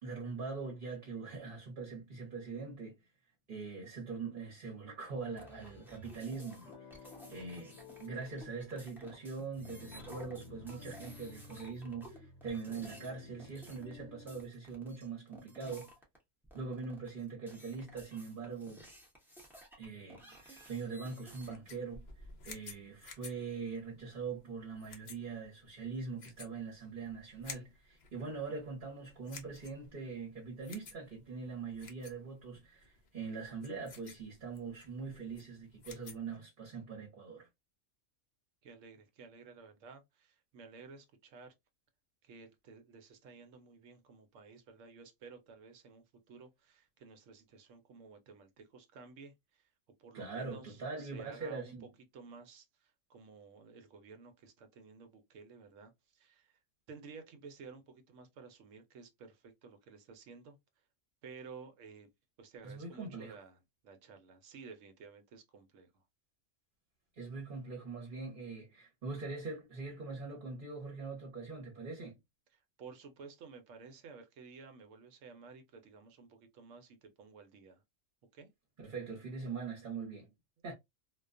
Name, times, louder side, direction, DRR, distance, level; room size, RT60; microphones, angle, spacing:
voice 1, 0.0-2.9 3.5-15.9 16.5-18.9 19.8-37.5 50.1-51.8 62.6-63.4 67.2-72.2 78.8-80.3 80.6-80.7, right 4 dB, 45° right, 0.9 m, -42 dB
sound 1, 5.2-14.4, left 4 dB, 70° left, 0.9 m, -55 dB
sound 2, 5.3-16.2 16.4-21.5, right 1 dB, ahead, 0.5 m, -55 dB
sound 3, 21.3-36.4, left 4 dB, 50° left, 0.5 m, -54 dB
voice 2, 38.6-41.5 42.2-49.7 50.0-56.6 56.9-60.6 61.2-62.1 62.4-66.0 72.5-77.8 78.3-78.5, right 5 dB, 80° right, 1.0 m, -54 dB
2.3 x 2.2 x 2.4 m
omnidirectional pair, 1.3 m